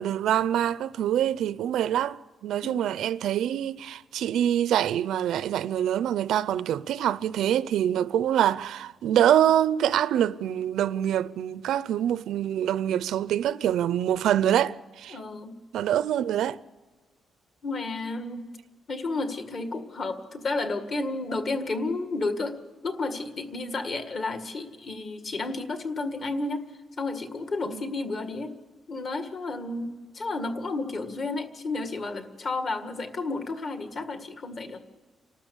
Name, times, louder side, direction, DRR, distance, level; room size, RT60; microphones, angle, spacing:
voice 1, 0.0-15.2 15.7-16.6 27.7-27.8, right 10 dB, 80° right, 0.5 m, -25 dB
voice 2, 2.6-3.0 15.1-15.5 17.6-18.5 18.9-22.6 22.8-26.7 27.0-28.6 28.9-34.8, left 3 dB, 35° left, 1.8 m, -32 dB
29.0 x 13.0 x 7.0 m
cardioid pair, 180°, 0 cm